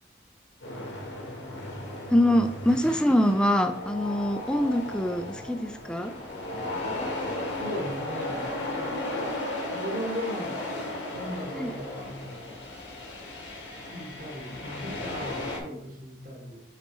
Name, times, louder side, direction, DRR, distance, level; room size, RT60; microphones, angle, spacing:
sound 1, 0.6-15.6, left 1 dB, 90° left, 1.7 m, -35 dB
voice 1, 2.1-6.1 11.5-11.7 15.7-15.8, left 1 dB, 5° left, 7 dB, 0.4 m, -24 dB
voice 2, 7.5-9.4 9.7-10.6 11.1-12.6 13.9-16.6, equal, 45° right, -3 dB, 2.0 m, -38 dB
7.9 x 4.1 x 3.1 m, 0.80 s
head